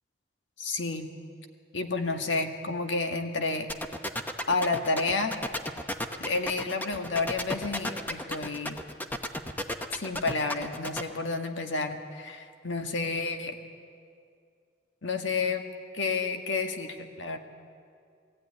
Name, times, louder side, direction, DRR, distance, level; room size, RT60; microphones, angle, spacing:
voice 1, 0.6-1.1 1.7-3.7 4.5-5.4 6.2-8.8 9.9-13.6 15.0-15.7 15.9-17.4, left 3 dB, 85° left, 5 dB, 1.7 m, -30 dB
sound 1, 3.7-11.0, left 1 dB, 10° left, 0.9 m, -33 dB
20.5 x 15.0 x 9.7 m, 2.3 s
head